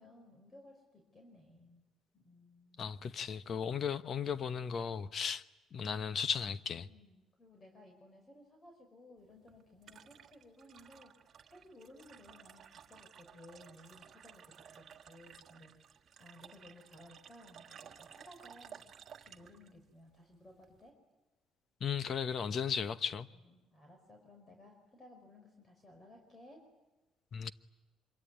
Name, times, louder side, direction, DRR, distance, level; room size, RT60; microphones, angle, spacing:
voice 1, 0.0-1.8 2.1-3.1 6.9-15.9 16.2-18.8 19.2-20.9 23.4-26.6, left 1 dB, 25° left, 5.2 m, -58 dB
voice 2, 2.8-5.4 5.7-6.9 21.8-23.3 27.3-27.5, left 7 dB, 50° left, 1.1 m, -36 dB
sound 1, 9.2-20.9, right 8 dB, 50° right, 1.6 m, -56 dB
26.0 x 23.5 x 9.4 m
cardioid pair, 110°, 0 cm